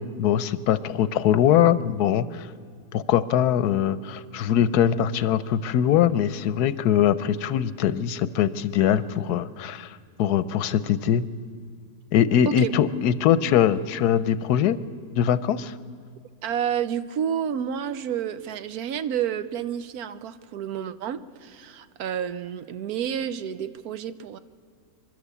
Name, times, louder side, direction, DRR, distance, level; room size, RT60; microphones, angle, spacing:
voice 1, 0.0-2.5 2.9-11.2 12.1-14.8 15.1-15.7, left 10 dB, 90° left, 15 dB, 1.2 m, -22 dB
voice 2, 16.4-24.4, right 9 dB, 80° right, 13 dB, 1.2 m, -30 dB
26.0 x 12.5 x 8.2 m, 2.1 s
omnidirectional pair, 1.6 m